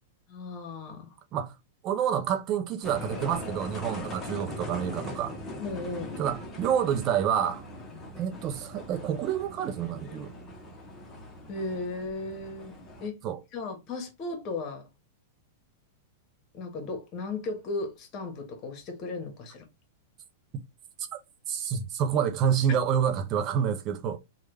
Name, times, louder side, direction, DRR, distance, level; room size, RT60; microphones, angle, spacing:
voice 1, 0.3-1.1 5.6-6.1 7.9-8.1 11.5-12.7 13.0-13.1 13.5-14.9 16.5-19.6 22.7-22.8, left 3 dB, 40° left, 1.3 m, -36 dB
voice 2, 1.8-5.3 6.2-7.6 8.1-10.3 13.2-13.4 21.5-24.2, right 8 dB, 40° right, 0.6 m, -28 dB
sound 1, 2.8-13.1, left 1 dB, 20° left, 1.0 m, -41 dB
3.2 x 2.4 x 3.2 m
hypercardioid pair, 110°, 0 cm